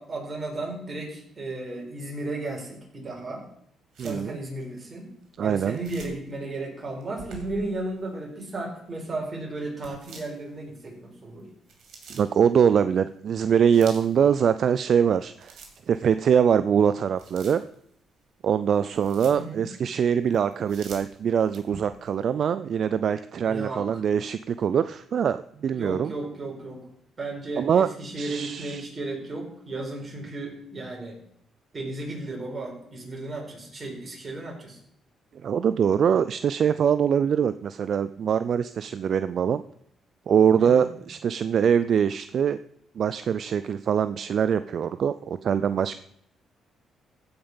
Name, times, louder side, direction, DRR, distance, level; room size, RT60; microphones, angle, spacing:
voice 1, 0.0-3.5 4.0-5.1 5.4-11.5 19.3-19.7 23.5-24.0 25.7-26.9 27.2-31.2 31.7-34.8 40.6-40.9, right 2 dB, 35° right, -1 dB, 4.5 m, -34 dB
sound 1, 3.9-4.3 5.6-6.3 7.0-8.0 9.8-10.8 11.4-12.3 13.3-14.2 14.9-16.1 16.5-16.6 17.2-17.9 18.5-19.5 20.3-22.1, right 4 dB, 75° right, 2.9 m, -46 dB
voice 2, 4.0-4.4 5.4-5.8 12.1-15.5 15.9-17.6 18.4-26.1 27.6-27.9 28.2-28.8 35.4-39.6 40.3-42.6 43.0-45.9, right 7 dB, 60° right, 13 dB, 0.3 m, -23 dB
15.0 x 5.3 x 5.6 m, 0.70 s
cardioid pair, 90°, 0 cm